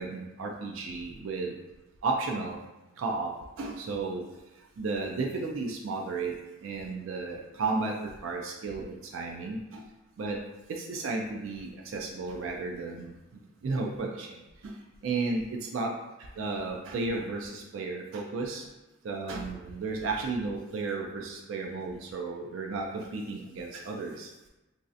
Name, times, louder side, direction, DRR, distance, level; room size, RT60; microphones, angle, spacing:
voice 1, 0.0-1.5 2.0-2.6 3.0-4.2 4.8-6.3 6.6-9.9 10.2-10.4 10.7-13.1 13.6-15.9 16.2-18.7 19.0-24.3, right 3 dB, 75° right, 0 dB, 0.3 m, -33 dB
3.1 x 2.6 x 2.5 m, 1.0 s
head